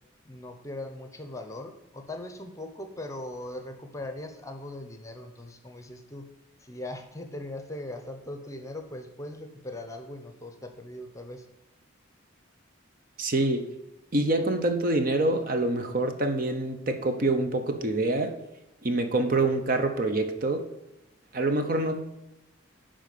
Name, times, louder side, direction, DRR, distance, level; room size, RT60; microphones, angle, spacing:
voice 1, 0.2-6.3 6.6-11.5, left 1 dB, 15° left, 6 dB, 0.8 m, -40 dB
voice 2, 13.2-13.6 14.1-18.4 18.8-20.7 21.3-22.0, right 2 dB, 45° right, 7 dB, 0.7 m, -26 dB
10.5 x 3.8 x 6.7 m, 0.91 s
head